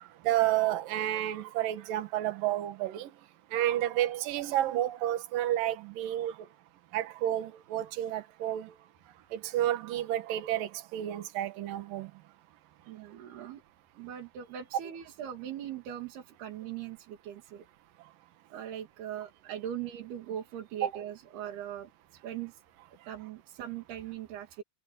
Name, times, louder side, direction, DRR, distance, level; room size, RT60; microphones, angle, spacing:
voice 1, 0.2-3.1 3.5-6.5 6.9-8.7 9.3-12.1 13.4-13.5 20.8-20.9, right 13 dB, 65° right, 2.9 m, -30 dB
voice 2, 12.9-13.6 14.0-17.6 18.5-22.6 23.1-24.6, right 10 dB, 85° right, 4.5 m, -40 dB
omnidirectional pair, 4.4 m